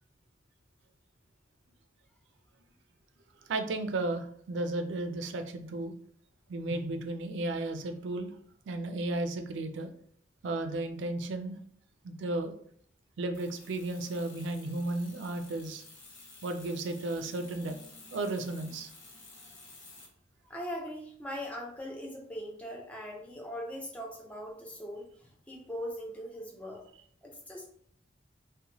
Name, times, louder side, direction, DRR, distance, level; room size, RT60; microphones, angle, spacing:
voice 1, 3.5-5.9 6.5-8.3 8.7-9.9 10.4-11.6 12.0-12.5 13.2-15.8 16.4-17.8 18.1-18.9, right 2 dB, 80° right, 7 dB, 0.4 m, -34 dB
sound 1, 13.3-20.1, left 3 dB, 90° left, 0.8 m, -52 dB
voice 2, 20.4-26.8 27.2-27.6, equal, 5° left, -1 dB, 0.4 m, -40 dB
2.7 x 2.1 x 2.9 m, 0.62 s
head